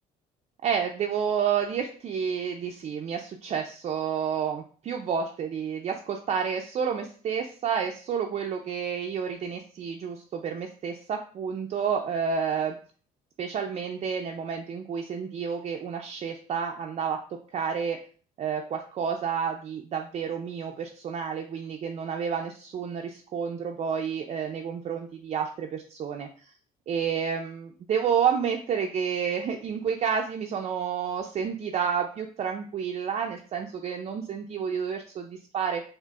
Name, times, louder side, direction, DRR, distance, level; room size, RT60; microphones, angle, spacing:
voice 1, 0.6-12.8 13.4-17.2 17.5-18.0 18.4-26.5 26.9-35.8, right 7 dB, 40° right, 2 dB, 0.4 m, -30 dB
4.7 x 2.5 x 2.3 m, 0.42 s
cardioid pair, 110°, 17 cm